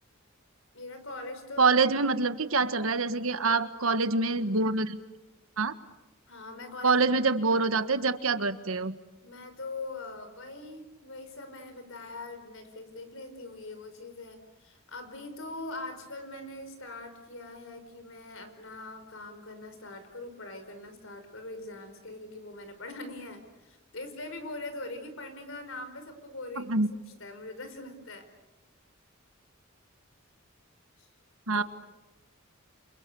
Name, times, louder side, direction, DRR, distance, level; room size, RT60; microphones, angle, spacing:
voice 1, 0.7-1.7 6.3-7.1 9.2-26.7 27.2-28.3 31.0-31.1 31.5-31.6, left 2 dB, 65° left, 8 dB, 5.2 m, -42 dB
voice 2, 1.6-5.0 5.6-5.7 6.8-8.9 26.6-26.9 31.5-31.6, right 3 dB, 80° right, 10 dB, 1.5 m, -25 dB
28.5 x 28.0 x 7.0 m, 1.0 s
head